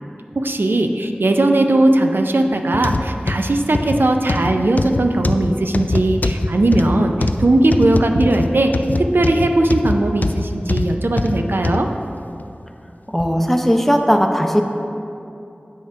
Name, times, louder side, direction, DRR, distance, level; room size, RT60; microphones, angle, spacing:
voice 1, 0.4-7.1 7.4-8.7 9.0-11.9, right 2 dB, 75° right, 4 dB, 0.4 m, -18 dB
sound 1, 2.7-11.9 12.4-12.5 13.2-13.3, left 2 dB, 50° left, 0.3 m, -22 dB
voice 2, 13.1-14.6, equal, 5° left, 3 dB, 0.6 m, -17 dB
9.0 x 3.5 x 5.7 m, 2.8 s
wide cardioid pair, 40°, 4 cm